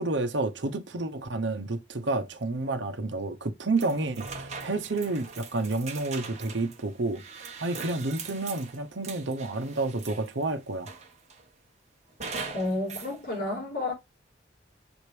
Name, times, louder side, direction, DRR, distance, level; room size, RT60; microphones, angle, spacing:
voice 1, 0.0-7.2 7.6-10.9, right 2 dB, 75° right, 0.9 m, -30 dB
sound 1, 3.8-10.4 10.9-11.4 12.2-13.1, right 5 dB, 40° right, 1.4 m, -41 dB
voice 2, 12.5-13.9, left 2 dB, 50° left, 4.5 m, -30 dB
7.1 x 5.0 x 3.3 m
head